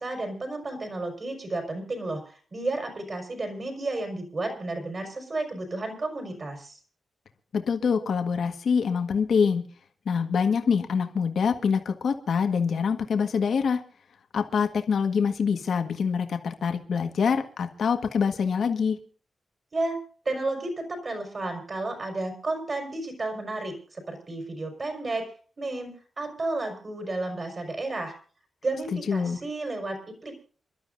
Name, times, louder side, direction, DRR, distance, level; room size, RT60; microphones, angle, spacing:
voice 1, 0.0-6.7 19.7-20.0 20.2-25.3 25.6-25.9 26.2-28.1 28.6-30.3, right 2 dB, 35° right, 4 dB, 4.8 m, -32 dB
voice 2, 7.5-9.7 10.0-13.8 14.3-19.0 28.9-29.4, left 6 dB, 65° left, 6 dB, 1.5 m, -25 dB
28.0 x 12.5 x 2.6 m, 0.41 s
wide cardioid pair, 140°, 0 cm